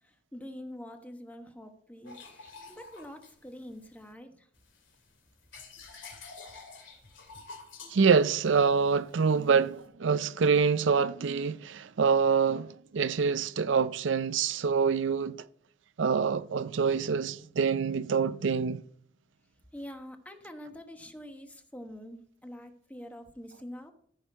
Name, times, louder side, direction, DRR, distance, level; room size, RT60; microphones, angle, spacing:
voice 1, 0.0-4.5 19.7-23.9, equal, 10° left, 1.0 m, -45 dB
sound 1, 2.0-4.1 4.5-9.9, left 4 dB, 80° left, 2.8 m, -50 dB
voice 2, 7.9-15.4 16.0-18.8, right 5 dB, 75° right, 0.5 m, -26 dB
14.0 x 6.4 x 4.6 m
head